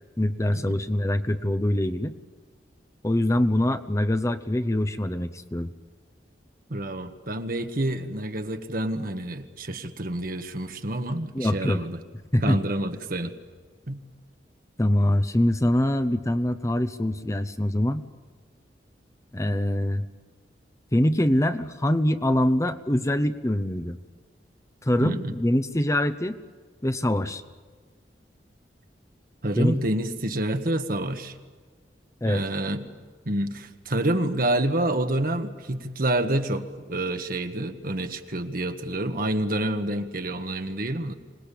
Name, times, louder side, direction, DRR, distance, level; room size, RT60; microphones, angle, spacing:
voice 1, 0.2-2.1 3.0-5.7 11.3-11.8 12.3-12.6 14.8-18.0 19.3-20.0 20.9-24.0 24.8-26.4 26.8-27.4 29.6-29.8 32.2-32.4, left 1 dB, 15° left, 10 dB, 0.8 m, -24 dB
voice 2, 6.7-12.0 12.4-13.3 13.9-14.0 25.0-25.4 29.4-31.3 32.2-32.9 33.2-41.1, right 1 dB, 55° right, 7 dB, 1.5 m, -28 dB
26.0 x 19.5 x 8.5 m, 1.5 s
head